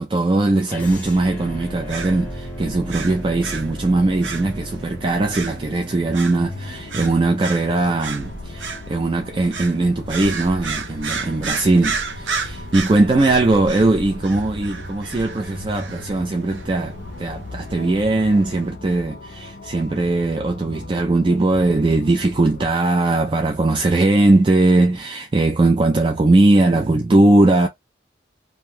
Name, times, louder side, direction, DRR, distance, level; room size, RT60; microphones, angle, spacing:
voice 1, 0.0-27.7, right 2 dB, 25° right, 0.3 m, -19 dB
sound 1, 0.7-6.8, equal, 10° left, 0.8 m, -35 dB
sound 2, 1.4-18.7, right 4 dB, 80° right, 0.7 m, -33 dB
sound 3, 6.3-22.7, left 3 dB, 55° left, 0.5 m, -38 dB
2.6 x 2.2 x 3.2 m
head